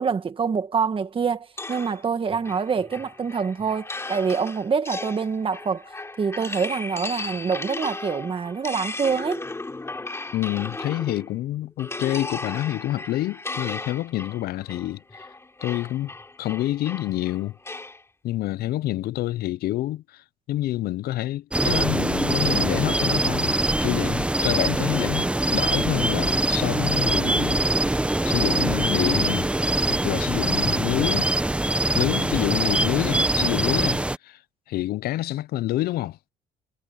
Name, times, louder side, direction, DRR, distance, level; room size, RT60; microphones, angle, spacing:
voice 1, 0.0-9.5, right 6 dB, 30° right, 1.7 m, -26 dB
sound 1, 1.6-11.4 11.8-18.0, left 2 dB, 15° left, 3.6 m, -36 dB
voice 2, 10.3-15.2 15.6-16.1 16.4-17.6 18.2-29.5 29.9-31.3 31.9-34.4 34.7-36.2, left 15 dB, 70° left, 0.6 m, -27 dB
sound 2, 21.5-34.2, right 1 dB, 5° right, 1.0 m, -23 dB
cardioid pair, 110°, 17 cm